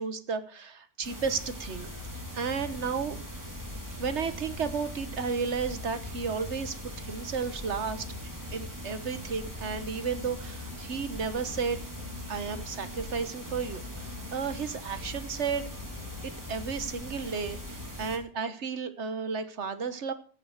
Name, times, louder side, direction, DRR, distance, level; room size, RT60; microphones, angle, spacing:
voice 1, 0.0-1.9 2.3-3.2 4.0-8.0 8.5-11.8 12.3-15.7 16.2-20.1, right 5 dB, 85° right, 11 dB, 1.5 m, -33 dB
sound 1, 1.0-18.2, equal, 15° right, 3.3 m, -41 dB
sound 2, 2.0-18.0, left 4 dB, 40° left, 1.1 m, -46 dB
15.5 x 7.8 x 6.5 m, 0.43 s
omnidirectional pair, 1.2 m